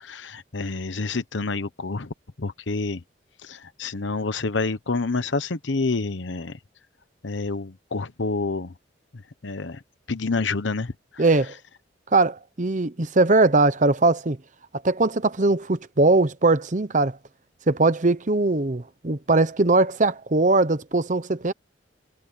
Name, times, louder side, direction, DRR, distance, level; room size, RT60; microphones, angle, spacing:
voice 1, 0.0-3.0 3.4-6.6 7.2-8.7 9.1-9.8 10.1-11.2, left 3 dB, 85° left, 1.0 m, -28 dB
voice 2, 11.2-11.5 12.1-14.4 14.8-17.2 17.7-21.5, right 2 dB, 40° right, 0.9 m, -20 dB
head